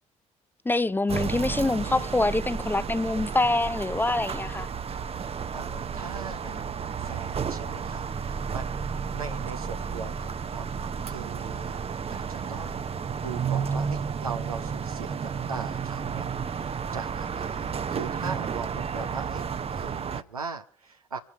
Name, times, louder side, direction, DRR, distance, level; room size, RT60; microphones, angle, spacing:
voice 1, 0.6-4.7, left 2 dB, 10° left, 0.7 m, -25 dB
sound 1, 1.1-20.2, right 6 dB, 35° right, 0.8 m, -32 dB
voice 2, 5.1-8.7 9.1-19.4 19.7-21.2, right 5 dB, 90° right, 0.8 m, -40 dB
26.5 x 9.1 x 4.6 m
figure-of-eight pair, 45°, 18 cm